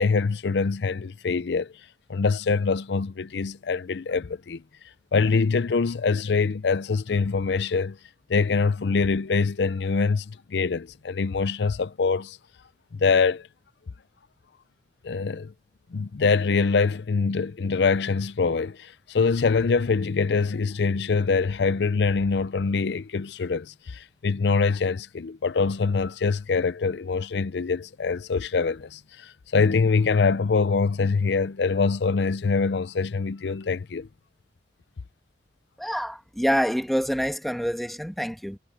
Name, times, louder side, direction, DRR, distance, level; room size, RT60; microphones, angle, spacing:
voice 1, 0.0-1.7 2.1-4.6 5.1-8.0 8.3-12.4 12.9-13.5 15.0-15.5 15.9-34.1, left 4 dB, 75° left, 0.5 m, -24 dB
voice 2, 35.8-38.6, equal, ahead, 1.6 m, -26 dB
head